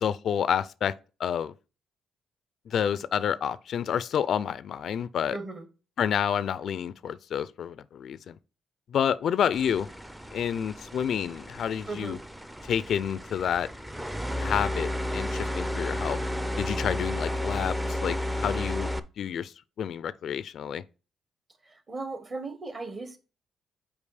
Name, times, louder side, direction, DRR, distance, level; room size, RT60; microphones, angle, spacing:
voice 1, 0.0-0.9 1.2-1.5 2.7-5.4 6.0-8.4 8.9-9.9 10.3-12.2 12.6-13.7 14.4-16.2 16.6-18.9 19.2-19.5 19.8-20.8, left 8 dB, 65° left, 0.3 m, -29 dB
voice 2, 5.3-5.7 11.9-12.2 21.6-23.2, right 3 dB, 35° right, 1.3 m, -37 dB
sound 1, 9.5-19.0, left 1 dB, 5° right, 0.5 m, -32 dB
5.4 x 4.6 x 4.9 m
cardioid pair, 90°, 0 cm